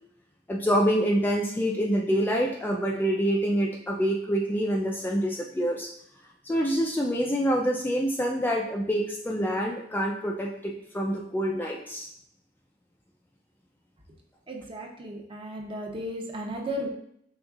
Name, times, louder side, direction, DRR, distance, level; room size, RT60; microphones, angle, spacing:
voice 1, 0.5-5.9 6.5-12.1, equal, 10° left, 0 dB, 0.3 m, -26 dB
voice 2, 14.5-16.9, equal, 30° right, 0 dB, 0.7 m, -35 dB
5.3 x 3.5 x 2.4 m, 0.72 s
head